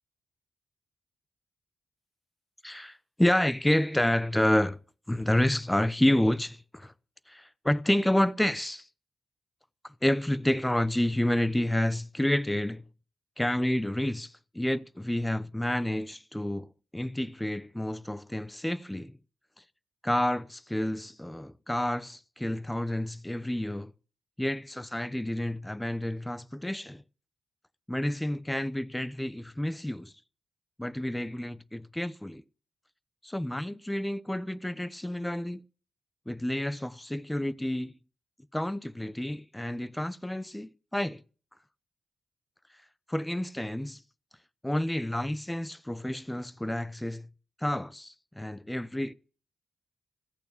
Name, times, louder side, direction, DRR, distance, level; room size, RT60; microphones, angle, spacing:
voice 1, 2.6-4.8 5.1-6.9 7.3-8.9 9.8-12.8 13.4-19.2 20.0-23.9 24.4-27.0 27.9-30.1 30.8-32.4 33.2-35.6 36.3-38.0 38.5-41.2 43.1-44.0 44.6-47.3 47.6-49.1, left 1 dB, 10° left, 0.8 m, -29 dB
15.0 x 8.5 x 8.3 m
supercardioid pair, 50°, 0 cm